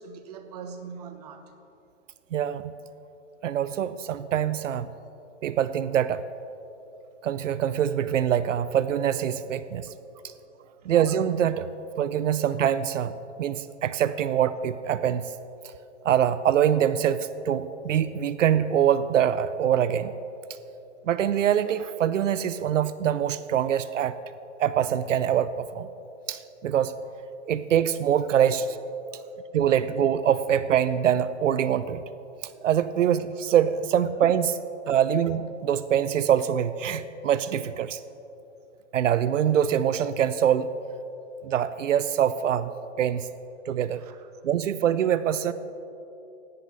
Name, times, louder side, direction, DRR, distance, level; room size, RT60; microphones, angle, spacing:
voice 1, 0.0-1.4 10.7-10.8 29.1-29.3 44.0-44.3, right 5 dB, 35° right, 7 dB, 0.9 m, -42 dB
voice 2, 2.3-2.7 3.4-4.9 5.4-6.2 7.2-9.9 10.9-11.7 12.0-13.1 13.4-15.2 16.0-20.1 21.1-24.1 24.6-25.9 26.3-26.9 27.5-28.8 29.5-32.0 32.6-34.6 34.9-38.0 38.9-40.7 41.4-42.7 43.0-43.3 43.7-44.0 44.4-45.5, right 9 dB, 85° right, 14 dB, 0.6 m, -24 dB
16.5 x 10.5 x 4.0 m, 2.9 s
hypercardioid pair, 160°, 37 cm